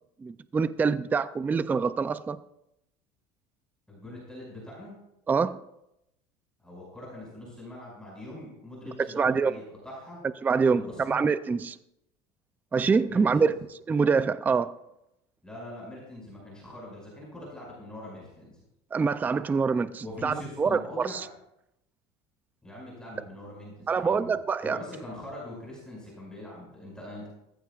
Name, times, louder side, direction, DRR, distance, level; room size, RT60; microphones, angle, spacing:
voice 1, 0.2-2.4 5.3-5.6 9.1-9.5 10.4-11.8 12.7-13.6 13.9-14.7 18.9-21.3 23.9-24.8, right 5 dB, 10° right, 14 dB, 0.3 m, -25 dB
voice 2, 3.9-5.0 6.6-10.2 10.7-11.2 13.1-13.6 15.4-18.6 20.0-21.3 22.6-27.3, left 1 dB, 5° left, -5 dB, 5.6 m, -42 dB
19.0 x 15.0 x 2.4 m, 0.84 s
cardioid pair, 140°, 15 cm